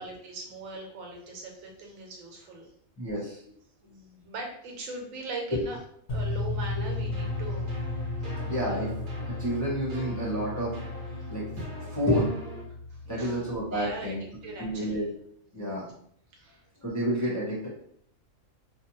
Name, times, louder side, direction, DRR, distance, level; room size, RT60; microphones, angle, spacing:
voice 1, 0.0-2.7 3.8-5.8 6.1-7.7 8.6-8.9 11.2-11.3 12.9-14.2 14.4-15.1 15.5-15.9 16.3-16.6, right 2 dB, 80° right, 1 dB, 1.1 m, -40 dB
voice 2, 3.0-3.4 5.5-5.6 8.5-8.9 9.3-10.7 11.3-12.3 13.1-14.2 14.6-15.1 15.5-15.9 16.8-17.7, equal, 15° left, -7 dB, 0.6 m, -29 dB
sound 1, 6.1-14.2, left 3 dB, 60° left, 0.8 m, -35 dB
sound 2, 6.8-12.6, right 1 dB, 45° right, 0.7 m, -44 dB
2.6 x 2.2 x 2.9 m, 0.66 s
omnidirectional pair, 1.4 m